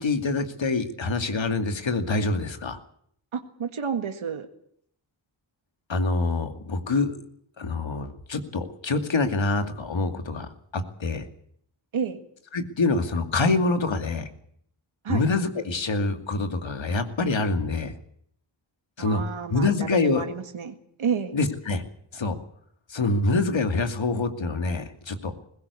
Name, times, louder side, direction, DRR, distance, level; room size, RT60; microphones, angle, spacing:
voice 1, 0.0-2.8 5.9-7.2 7.6-11.2 12.5-14.3 15.1-17.9 19.0-19.2 19.5-20.2 21.3-21.8 22.1-22.4 22.9-25.3, left 3 dB, 65° left, 7 dB, 2.6 m, -25 dB
voice 2, 3.3-4.5 11.9-12.2 15.0-15.3 19.0-21.3, right 6 dB, 80° right, 7 dB, 1.9 m, -30 dB
20.0 x 17.0 x 8.4 m, 0.66 s
cardioid pair, 45°, 49 cm